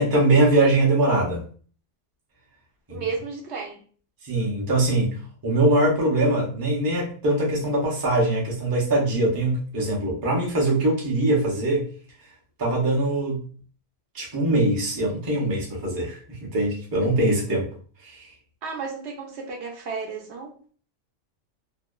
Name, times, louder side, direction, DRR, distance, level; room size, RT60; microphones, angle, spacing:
voice 1, 0.0-1.4 2.9-3.0 4.2-5.2 5.4-11.9 12.6-13.4 14.1-17.7 18.0-18.3, right 2 dB, 25° right, -3 dB, 0.5 m, -22 dB
voice 2, 2.9-3.8 18.6-20.5, right 4 dB, 70° right, 1 dB, 0.8 m, -33 dB
2.7 x 2.1 x 2.2 m, 0.43 s
omnidirectional pair, 1.3 m